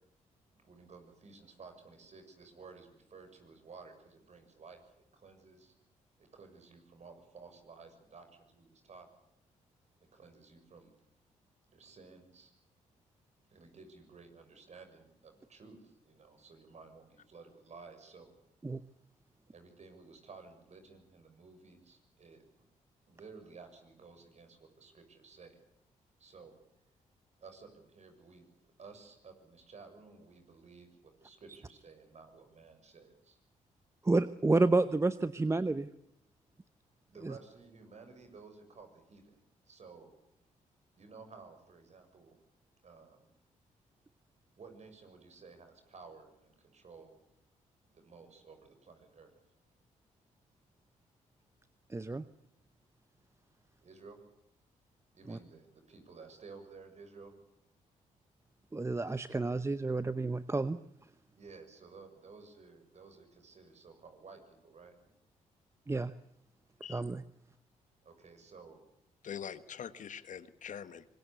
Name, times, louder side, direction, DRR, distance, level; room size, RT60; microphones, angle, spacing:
voice 1, 0.6-5.7 6.2-9.1 10.1-10.9 11.7-12.5 13.5-18.3 19.5-22.5 23.1-25.6 26.2-26.5 27.4-33.4 37.1-40.1 40.9-42.4 42.8-43.3 44.6-47.2 47.9-49.3 53.8-54.2 55.1-57.4 61.3-64.9 68.0-68.9, right 4 dB, 55° right, 6.7 m, -54 dB
voice 2, 34.0-35.9 51.9-52.2 55.3-55.4 58.7-60.8 65.9-66.1 66.9-67.2, right 3 dB, 20° right, 0.9 m, -30 dB
voice 3, 69.2-71.0, left 8 dB, 65° left, 1.4 m, -43 dB
25.0 x 20.5 x 8.3 m
cardioid pair, 65°, 14 cm